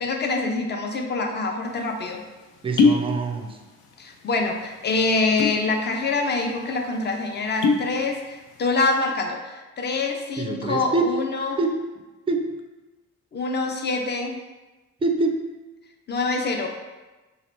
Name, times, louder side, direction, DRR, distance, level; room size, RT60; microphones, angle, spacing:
voice 1, 0.0-2.2 4.0-11.6 13.3-14.4 16.1-16.7, left 3 dB, 35° left, 3 dB, 0.5 m, -25 dB
sound 1, 1.7-1.8 2.6-3.1 3.4-4.0 4.3-4.5 5.2-5.7 6.1-6.2 6.5-6.7 7.4-7.9 8.3-8.7, left 4 dB, 85° left, 0.5 m, -21 dB
voice 2, 2.6-3.6 10.4-11.1 11.6-11.8 12.3-12.5 15.0-15.4, right 3 dB, 20° right, 4 dB, 0.4 m, -25 dB
2.9 x 2.8 x 3.2 m, 1.2 s
cardioid pair, 90°, 30 cm